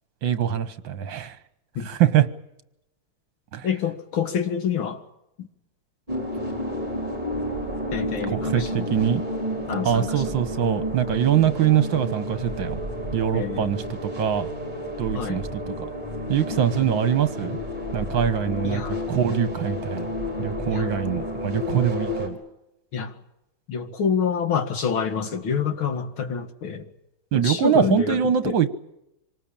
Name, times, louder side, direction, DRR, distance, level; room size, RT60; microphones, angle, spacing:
voice 1, 0.2-1.4 1.8-2.3 3.5-3.7 8.3-9.2 9.8-12.8 13.1-14.5 15.0-15.9 16.3-17.6 17.9-18.8 19.1-20.1 20.4-22.4 27.3-28.7, right 9 dB, 65° right, 12 dB, 2.0 m, -23 dB
voice 2, 3.6-5.0 5.4-5.5 7.9-9.0 9.7-10.2 13.3-13.8 15.1-15.4 16.5-16.6 18.6-19.0 20.7-20.9 22.9-23.1 23.7-26.9 27.3-28.6, left 7 dB, 75° left, 6 dB, 2.9 m, -27 dB
sound 1, 6.1-22.3, left 1 dB, 20° right, 5.3 m, -30 dB
25.5 x 19.0 x 8.8 m, 0.84 s
omnidirectional pair, 2.3 m